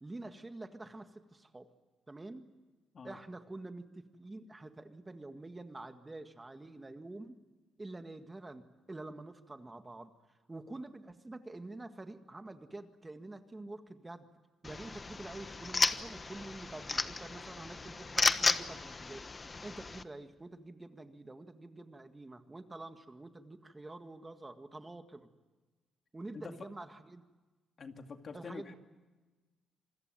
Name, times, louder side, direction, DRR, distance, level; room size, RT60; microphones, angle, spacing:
voice 1, 0.0-1.7 2.1-2.5 3.0-7.4 7.8-14.3 14.6-25.3 26.1-27.2 28.3-28.7, right 2 dB, 20° right, 8 dB, 1.8 m, -47 dB
sound 1, 14.6-20.0, left 3 dB, 30° left, 1.2 m, -34 dB
voice 2, 26.3-26.7 27.8-28.7, left 5 dB, 45° left, 6 dB, 2.3 m, -46 dB
27.0 x 21.0 x 9.1 m, 1.2 s
cardioid pair, 90°, 0 cm